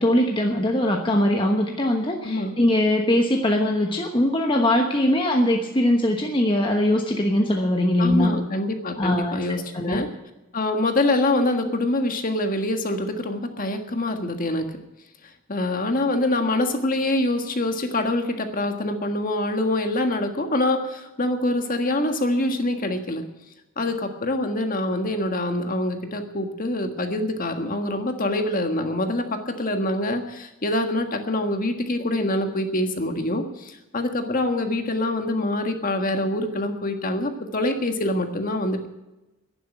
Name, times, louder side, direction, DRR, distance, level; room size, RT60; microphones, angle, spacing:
voice 1, 0.0-8.3 9.0-9.4 9.7-10.0, left 1 dB, 25° left, 2 dB, 1.2 m, -21 dB
voice 2, 2.2-2.5 8.0-10.1 10.5-14.7 15.5-23.2 23.8-38.9, left 1 dB, 40° left, 5 dB, 1.6 m, -25 dB
11.0 x 10.5 x 9.3 m, 1.0 s
head